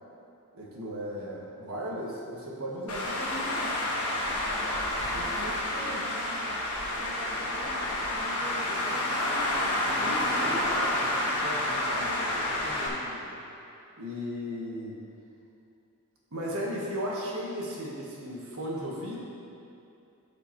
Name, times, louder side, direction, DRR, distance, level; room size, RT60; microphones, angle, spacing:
voice 1, 0.5-3.7 5.0-6.1 8.7-9.0 10.0-10.9 11.3-13.4 14.0-15.0 16.3-19.2, equal, 70° right, -3 dB, 1.5 m, -37 dB
Traffic noise roadway noise, 2.9-12.9, left 1 dB, 75° left, 1.4 m, -29 dB
voice 2, 5.0-5.6 5.8-6.6 7.0-9.6 10.4-11.3, right 2 dB, 30° right, -2 dB, 0.5 m, -45 dB
13.0 x 5.1 x 3.1 m, 2.7 s
head